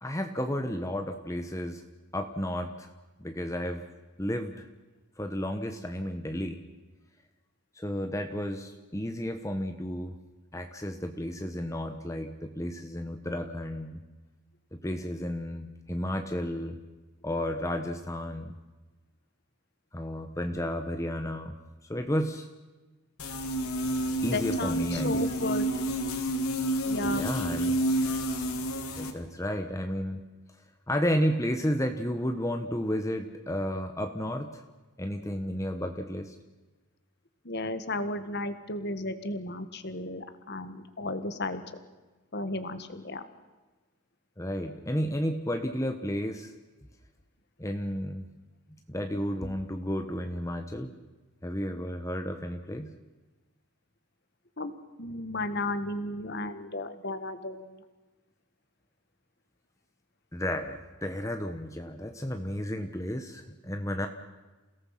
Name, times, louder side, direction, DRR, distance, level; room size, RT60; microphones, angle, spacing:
voice 1, 0.0-1.8 2.1-2.9 3.2-3.8 4.2-4.7 5.2-6.6 7.7-10.1 10.5-14.0 14.7-16.8 17.2-18.6 19.9-21.6 21.9-22.5 24.2-25.3 27.0-27.8 29.0-30.2 30.9-34.6 35.0-36.3 44.4-46.5 47.6-48.3 48.9-50.9 51.4-52.9 60.3-64.1, equal, 15° left, 6 dB, 1.1 m, -32 dB
sound 1, 23.2-29.1, right 1 dB, 80° left, 2.8 m, -29 dB
voice 2, 24.3-25.7 26.8-27.2 37.4-41.6 42.3-43.2 54.6-54.7 55.0-57.7, left 2 dB, 50° left, 10 dB, 1.6 m, -34 dB
29.0 x 18.0 x 5.9 m, 1.2 s
head